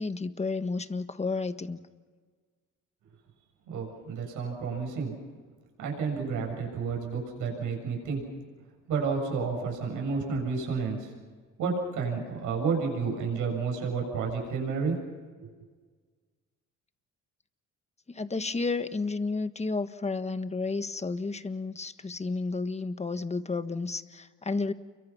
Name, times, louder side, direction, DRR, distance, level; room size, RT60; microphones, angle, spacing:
voice 1, 0.0-1.8 18.1-24.7, left 3 dB, 20° left, 10 dB, 1.5 m, -31 dB
voice 2, 3.7-5.1 5.8-8.2 8.9-11.1 11.6-15.0 15.4-15.5, right 5 dB, 85° right, 1 dB, 7.5 m, -31 dB
29.5 x 23.5 x 6.0 m, 1.5 s
cardioid pair, 90°, 30 cm